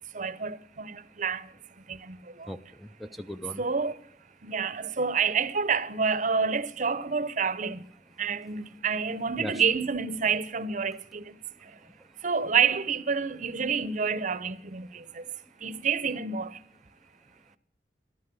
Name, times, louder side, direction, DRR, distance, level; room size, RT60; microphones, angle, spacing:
voice 1, 0.1-1.5 1.9-2.5 3.6-4.0 4.4-7.9 8.2-11.7 12.2-15.2 15.6-16.6, right 6 dB, 45° right, 0.7 m, -28 dB
voice 2, 2.5-3.6 9.4-9.6 11.7-12.1, equal, ahead, 0.4 m, -40 dB
13.5 x 11.5 x 6.9 m
head